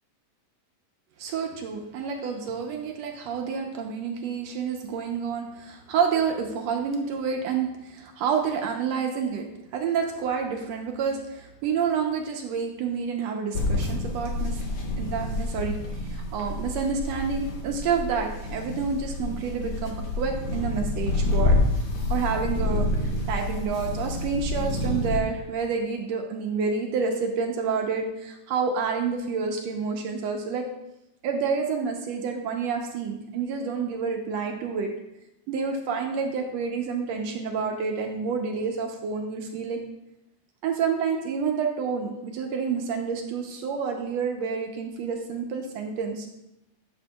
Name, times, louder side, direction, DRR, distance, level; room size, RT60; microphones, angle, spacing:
voice 1, 1.2-9.4 9.7-14.6 15.0-21.6 22.1-30.7 31.2-34.9 35.5-39.8 40.6-46.3, right 6 dB, 75° right, 2 dB, 1.8 m, -29 dB
sound 1, 13.5-25.2, left 2 dB, 65° left, 1.0 m, -28 dB
11.5 x 7.0 x 2.3 m, 0.89 s
omnidirectional pair, 3.4 m